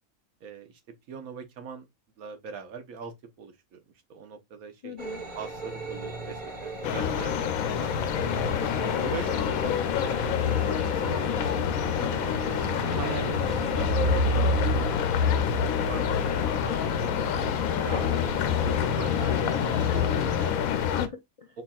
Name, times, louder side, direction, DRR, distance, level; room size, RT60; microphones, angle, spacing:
voice 1, 0.4-1.9 2.2-3.8 4.1-5.0 5.3-7.4 7.8-8.5 8.9-10.6 10.9-12.4 12.8-16.4 17.0-20.6 21.5-21.6, right 6 dB, 85° right, 1.3 m, -41 dB
voice 2, 4.8-5.2 10.4-10.6 16.3-17.0 19.2-21.6, left 5 dB, 55° left, 0.3 m, -40 dB
sound 1, 5.0-20.5, right 1 dB, 35° right, 1.3 m, -33 dB
sound 2, 6.8-21.1, left 9 dB, 90° left, 1.1 m, -27 dB
4.6 x 4.2 x 2.3 m
omnidirectional pair, 1.4 m